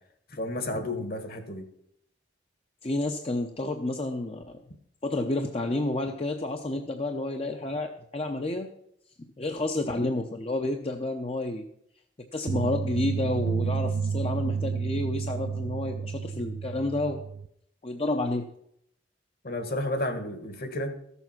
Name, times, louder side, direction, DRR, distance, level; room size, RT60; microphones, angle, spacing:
voice 1, 0.3-1.7 19.4-20.9, left 1 dB, 55° left, 8 dB, 1.6 m, -32 dB
voice 2, 2.8-4.6 5.0-8.7 9.4-11.7 12.3-17.2 17.8-18.5, left 2 dB, 35° left, 4 dB, 0.7 m, -30 dB
sound 1, 12.5-17.5, right 5 dB, 80° right, 0.5 m, -30 dB
14.0 x 7.1 x 5.9 m, 0.73 s
head